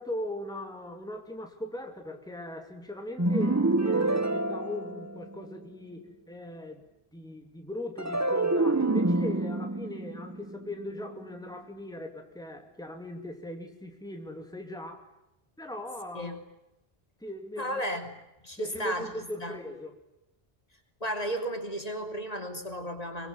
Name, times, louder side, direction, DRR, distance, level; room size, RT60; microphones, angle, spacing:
voice 1, 0.0-6.9 7.1-15.1 15.6-16.4 17.2-17.9 18.6-20.0, left 1 dB, 5° left, 2.9 m, -39 dB
sound 1, 3.2-5.6 8.0-11.3, right 2 dB, 15° right, 1.0 m, -27 dB
voice 2, 17.6-18.1 18.4-19.1 19.4-19.5 21.0-23.3, equal, 40° left, 3.3 m, -34 dB
24.0 x 23.0 x 9.7 m
omnidirectional pair, 1.0 m